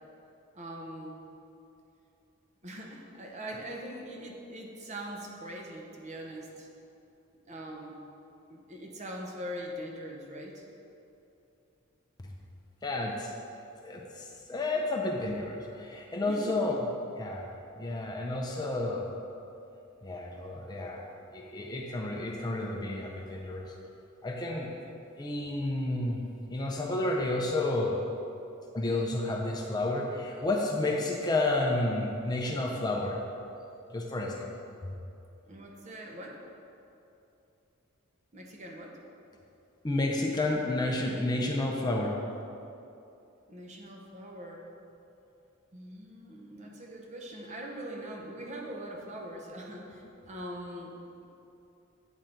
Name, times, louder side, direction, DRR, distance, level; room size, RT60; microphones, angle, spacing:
voice 1, 0.5-1.2 2.6-6.7 7.5-8.0 8.5-10.6 16.2-16.5 35.5-36.4 38.3-39.0 43.5-44.7 45.7-50.9, right 1 dB, 35° right, 0 dB, 0.7 m, -42 dB
voice 2, 12.8-13.3 13.8-16.8 17.2-17.5 17.8-19.1 20.0-21.0 21.3-23.7 24.2-24.7 25.2-28.0 28.7-33.2 33.9-34.5 34.8-34.9 39.8-42.2, left 2 dB, 20° left, -1 dB, 0.5 m, -31 dB
9.0 x 3.8 x 4.4 m, 2.7 s
head